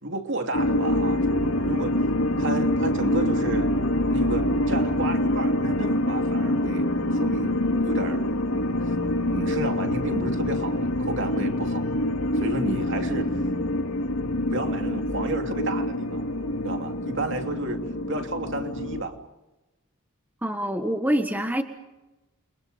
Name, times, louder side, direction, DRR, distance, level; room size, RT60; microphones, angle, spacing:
voice 1, 0.0-1.9 2.4-3.7 4.0-6.9 7.1-7.6 7.8-8.2 8.8-8.9 9.3-11.9 12.3-13.3 14.5-16.3 16.6-17.8 18.1-19.2, right 2 dB, 60° right, 4 dB, 3.0 m, -32 dB
sound 1, 0.5-19.0, left 1 dB, 75° left, 2.6 m, -25 dB
voice 2, 20.4-21.6, equal, 10° right, 6 dB, 1.5 m, -25 dB
30.0 x 25.0 x 5.1 m, 1.0 s
head